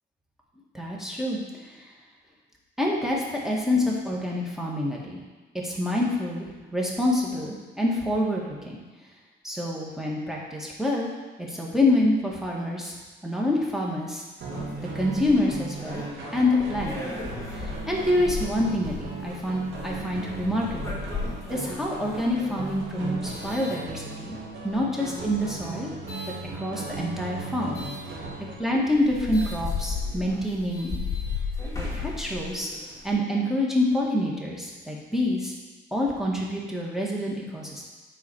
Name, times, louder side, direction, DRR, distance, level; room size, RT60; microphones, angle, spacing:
voice 1, 0.7-1.4 2.8-5.2 5.5-8.8 9.4-11.1 11.4-13.0 13.2-14.2 14.9-16.0 16.3-17.0 17.6-21.0 21.5-24.4 24.6-25.9 26.5-27.8 28.6-31.0 31.9-32.7 33.0-35.5 35.9-37.9, left 1 dB, ahead, -3 dB, 1.7 m, -26 dB
sound 1, 14.4-28.5, right 3 dB, 70° right, 2.1 m, -37 dB
sound 2, 14.5-24.5 25.1-26.4 27.7-28.0 28.6-28.7 28.9-33.1, left 4 dB, 15° left, 2.0 m, -35 dB
9.5 x 4.1 x 4.5 m, 1.2 s
cardioid pair, 90°, 20 cm